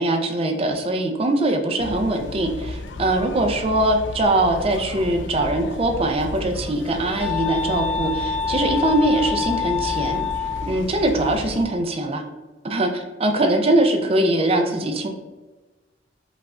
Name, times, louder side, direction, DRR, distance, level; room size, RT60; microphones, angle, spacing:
voice 1, 0.0-10.2 10.6-12.2 12.6-15.1, right 1 dB, 30° right, 4 dB, 0.5 m, -22 dB
sound 1, 1.8-11.7, left 2 dB, 70° left, 0.4 m, -34 dB
sound 2, 7.1-10.7, left 7 dB, 5° left, 1.0 m, -26 dB
5.3 x 2.4 x 3.5 m, 1.2 s
head